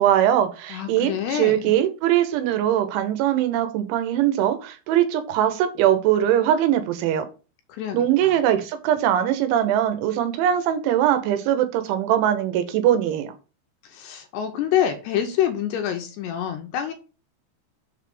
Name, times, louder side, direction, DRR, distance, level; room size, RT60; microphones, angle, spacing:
voice 1, 0.0-7.2 7.9-13.3, right 11 dB, 85° right, 9 dB, 3.3 m, -21 dB
voice 2, 0.7-1.7 7.7-8.3 13.8-16.9, left 10 dB, 80° left, 5 dB, 2.5 m, -26 dB
7.3 x 3.4 x 5.1 m, 0.34 s
omnidirectional pair, 5.3 m